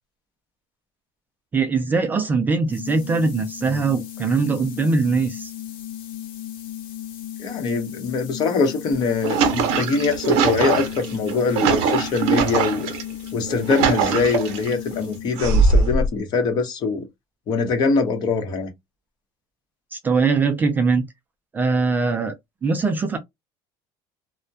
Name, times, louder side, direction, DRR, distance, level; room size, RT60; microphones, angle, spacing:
voice 1, 1.5-5.5 19.9-21.0 21.5-22.3 22.6-23.2, right 4 dB, 15° right, 0.3 m, -21 dB
sound 1, 2.7-15.6, left 11 dB, 80° left, 0.8 m, -35 dB
voice 2, 7.4-12.9 13.3-17.1 17.5-18.7, left 4 dB, 40° left, 0.8 m, -23 dB
sound 2, 8.9-13.0 13.5-14.7 15.4-16.1, right 5 dB, 65° right, 0.7 m, -21 dB
2.2 x 2.1 x 2.6 m
cardioid pair, 150°, 11 cm